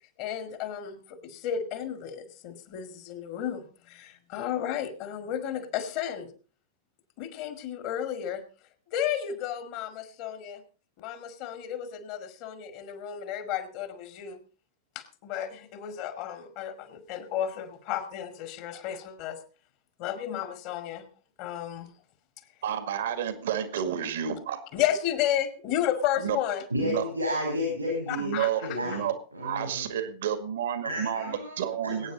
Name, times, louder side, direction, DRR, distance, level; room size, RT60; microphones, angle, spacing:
voice 1, 0.2-6.3 7.2-8.4 8.9-10.6 11.0-14.4 14.9-19.4 20.0-21.1 21.4-21.9 24.7-26.6 28.1-29.0, left 10 dB, 45° left, 9 dB, 2.3 m, -33 dB
voice 2, 22.6-24.6 26.2-26.4 26.8-27.1 28.2-29.2 29.4-32.1, right 9 dB, 60° right, 10 dB, 1.9 m, -30 dB
voice 3, 26.7-28.3 28.6-29.0 29.3-29.9 30.8-32.1, equal, 85° right, 2 dB, 4.5 m, -31 dB
21.5 x 9.4 x 4.0 m, 0.36 s
figure-of-eight pair, 90°, 0 cm